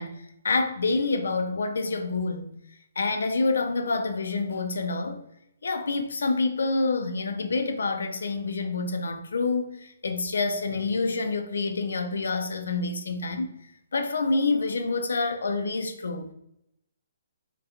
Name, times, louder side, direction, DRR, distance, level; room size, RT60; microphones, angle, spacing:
voice 1, 0.0-2.5 3.0-5.2 5.6-13.5 13.9-16.3, left 3 dB, 90° left, 0.4 m, -27 dB
2.3 x 2.2 x 2.7 m
hypercardioid pair, 175°, 0 cm